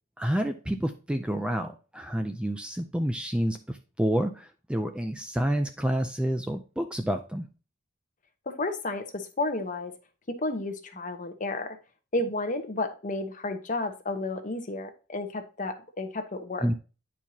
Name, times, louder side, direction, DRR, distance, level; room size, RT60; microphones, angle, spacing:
voice 1, 0.2-7.5 16.6-16.7, equal, 5° right, 7 dB, 0.4 m, -29 dB
voice 2, 8.5-9.9 10.3-11.8 12.1-16.7, left 2 dB, 40° left, 6 dB, 1.0 m, -32 dB
10.0 x 4.5 x 2.8 m, 0.34 s
head